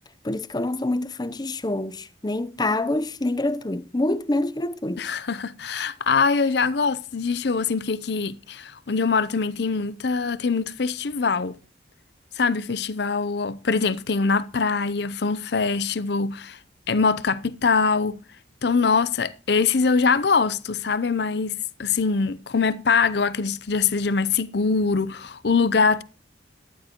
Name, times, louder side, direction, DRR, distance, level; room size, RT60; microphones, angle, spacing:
voice 1, 0.2-5.2, left 2 dB, 20° left, 0.6 m, -26 dB
voice 2, 5.0-11.5 12.4-16.6 16.9-18.2 18.6-26.0, left 4 dB, 60° left, 0.6 m, -23 dB
15.0 x 12.0 x 3.0 m
head